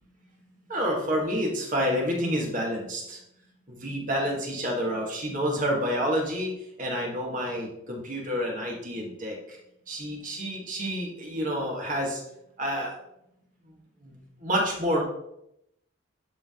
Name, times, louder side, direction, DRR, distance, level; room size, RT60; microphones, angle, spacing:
voice 1, 0.7-3.2 3.7-6.5 6.8-9.6 9.9-12.2 12.6-12.9 14.0-14.1 14.4-15.0, equal, 45° right, -1 dB, 1.9 m, -28 dB
11.0 x 3.9 x 3.9 m, 0.80 s
head